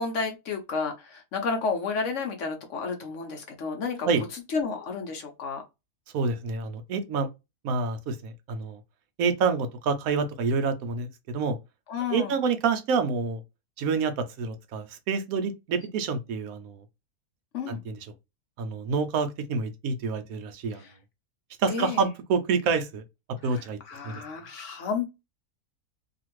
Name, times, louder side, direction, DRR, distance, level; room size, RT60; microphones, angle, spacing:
voice 1, 0.0-4.1 4.5-5.6 11.9-12.3 17.5-17.8 20.8-20.9 21.7-22.0 23.5-25.1, left 5 dB, 60° left, 0.9 m, -31 dB
voice 2, 6.1-7.3 7.6-8.8 9.2-11.6 12.1-13.4 13.8-16.8 17.7-18.0 18.6-20.8 21.6-23.0 23.4-23.8 24.0-24.2, right 5 dB, 75° right, 1.0 m, -27 dB
2.8 x 2.5 x 2.9 m
omnidirectional pair, 1.6 m